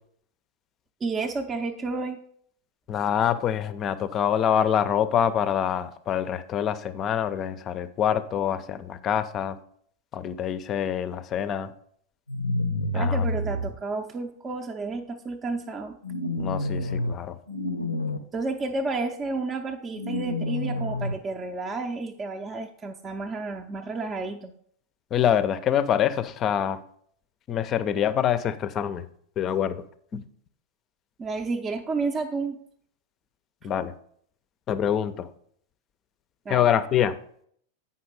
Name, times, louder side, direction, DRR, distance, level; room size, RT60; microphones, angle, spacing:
voice 1, 1.0-2.2 12.9-16.0 18.3-24.5 31.2-32.6 33.6-33.7 36.5-36.7, right 3 dB, 20° right, 3 dB, 0.6 m, -31 dB
voice 2, 2.9-9.6 10.1-11.7 12.9-13.2 16.4-17.3 25.1-26.8 27.5-29.0 29.4-29.8 30.1-30.2 33.6-33.9 34.7-35.1 36.5-37.1, left 9 dB, 30° left, 14 dB, 0.6 m, -25 dB
sound 1, 12.3-13.7 16.0-17.1 17.5-18.2 19.9-21.1, left 1 dB, 85° left, 0.6 m, -28 dB
8.7 x 5.6 x 4.8 m, 0.64 s
figure-of-eight pair, 90°, 0 cm